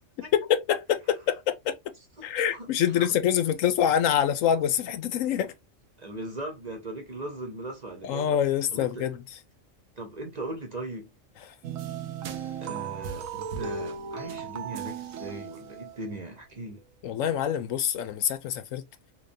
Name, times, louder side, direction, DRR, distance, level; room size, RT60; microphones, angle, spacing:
voice 1, 0.3-1.7 2.2-5.5 8.0-9.2 17.0-18.8, left 9 dB, 80° left, 1.0 m, -25 dB
voice 2, 2.2-3.1 6.0-8.3 8.7-9.0 10.0-11.1 12.6-16.8, right 2 dB, 40° right, 0.8 m, -39 dB
sound 1, 11.6-16.2, right 6 dB, 85° right, 1.1 m, -36 dB
3.7 x 3.1 x 2.6 m
omnidirectional pair, 1.4 m